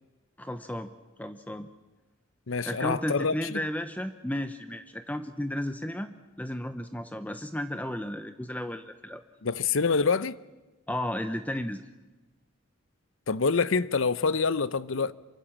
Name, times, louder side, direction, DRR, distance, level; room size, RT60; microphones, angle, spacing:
voice 1, 0.4-0.9 1.2-1.7 2.7-9.2 10.9-11.8, left 1 dB, 10° left, 0.8 m, -33 dB
voice 2, 2.5-3.6 9.4-10.4 13.3-15.1, left 4 dB, 70° left, 0.8 m, -26 dB
27.0 x 24.0 x 7.4 m
head